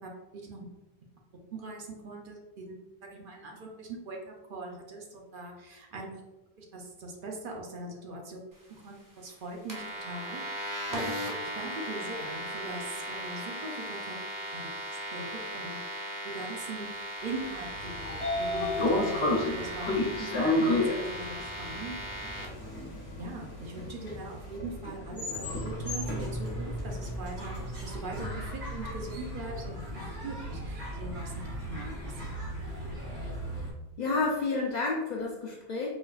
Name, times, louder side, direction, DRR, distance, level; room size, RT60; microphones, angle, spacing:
voice 1, 0.0-0.7 1.5-2.7 3.0-6.2 6.6-8.4 8.7-11.1 11.4-14.1 14.5-14.6 14.9-15.8 16.2-19.3 19.6-22.5 23.2-29.8 30.2-31.3 31.7-32.3, right 2 dB, 60° right, 0 dB, 0.7 m, -41 dB
sound 1, 9.7-22.5, right 1 dB, 30° right, 0.4 m, -38 dB
Train / Sliding door, 17.6-27.8, left 2 dB, 85° left, 1.0 m, -31 dB
sound 2, 25.4-33.7, right 1 dB, 80° right, 1.6 m, -37 dB
voice 2, 34.0-35.9, left 3 dB, 55° left, -2 dB, 0.5 m, -30 dB
4.2 x 2.3 x 2.3 m, 1.0 s
omnidirectional pair, 1.1 m